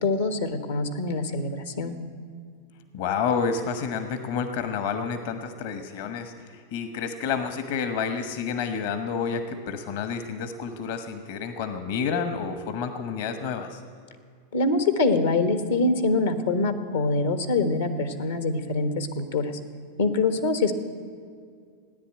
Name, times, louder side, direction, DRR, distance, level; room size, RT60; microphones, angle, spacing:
voice 1, 0.0-1.9 14.5-19.5 20.0-20.7, left 3 dB, 90° left, 8 dB, 1.4 m, -24 dB
voice 2, 2.9-13.8, left 6 dB, 65° left, 8 dB, 1.2 m, -29 dB
16.0 x 10.0 x 9.0 m, 2.2 s
hypercardioid pair, 110°, 0 cm